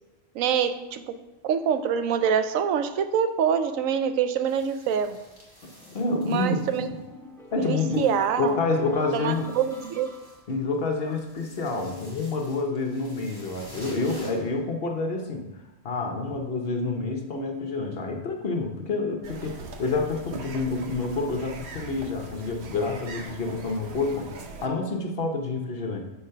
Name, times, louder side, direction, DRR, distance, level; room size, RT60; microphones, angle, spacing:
voice 1, 0.3-1.1 1.4-5.2 6.3-6.9 7.6-8.6 9.1-10.1, right 8 dB, 85° right, 10 dB, 1.0 m, -25 dB
sound 1, 4.5-7.2 7.5-14.6, equal, 15° right, 1.8 m, -50 dB
sound 2, 5.8-10.7, left 1 dB, ahead, 0.6 m, -48 dB
voice 2, 5.9-7.0 7.5-8.1 8.4-9.5 10.5-15.5 15.8-24.3 24.6-26.0, left 3 dB, 50° left, 3 dB, 1.0 m, -28 dB
sound 3, 19.2-24.7, right 4 dB, 60° right, 1.0 m, -41 dB
7.0 x 3.9 x 5.6 m, 1.0 s
omnidirectional pair, 1.4 m